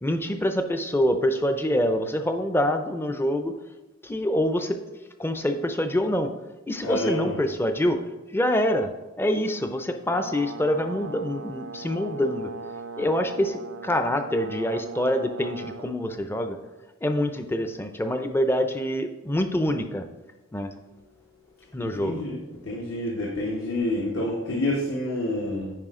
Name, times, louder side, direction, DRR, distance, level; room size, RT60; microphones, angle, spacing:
voice 1, 0.0-3.5 4.0-4.8 5.2-6.3 6.7-8.0 8.3-8.9 9.2-12.5 13.0-16.6 17.0-20.1 20.5-20.7 21.7-22.2, left 1 dB, 10° left, 7 dB, 0.5 m, -25 dB
voice 2, 6.8-7.4 22.0-22.4 22.6-25.7, left 1 dB, 70° left, -4 dB, 1.4 m, -28 dB
Brass instrument, 10.1-15.9, right 4 dB, 80° right, 0.5 m, -39 dB
9.1 x 5.1 x 3.7 m, 1.1 s
head